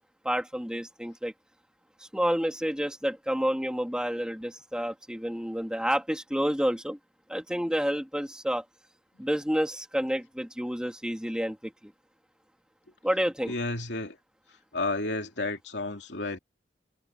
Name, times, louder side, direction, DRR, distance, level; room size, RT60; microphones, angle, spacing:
voice 1, 0.2-1.3 2.1-7.0 7.3-8.6 9.2-11.9 13.0-13.5, equal, 5° right, 2.5 m, -29 dB
voice 2, 13.5-14.2 14.7-16.4, left 2 dB, 80° left, 2.8 m, -31 dB
head